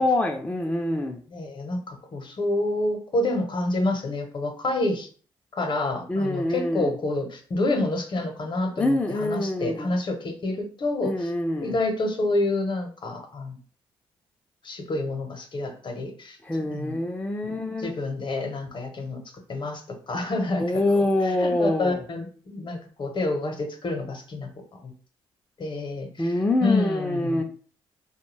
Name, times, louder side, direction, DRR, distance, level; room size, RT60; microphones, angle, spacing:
voice 1, 0.0-1.2 6.1-6.9 8.8-9.9 11.0-11.7 16.4-17.9 20.6-22.0 26.2-27.4, left 1 dB, 15° left, 2 dB, 0.5 m, -25 dB
voice 2, 1.3-5.1 5.5-11.3 11.6-13.6 14.6-16.4 16.7-17.0 17.4-19.2 19.5-19.8 20.1-24.9 25.6-27.4, left 2 dB, 50° left, 5 dB, 0.8 m, -28 dB
2.3 x 2.2 x 3.2 m, 0.43 s
supercardioid pair, 50°, 10 cm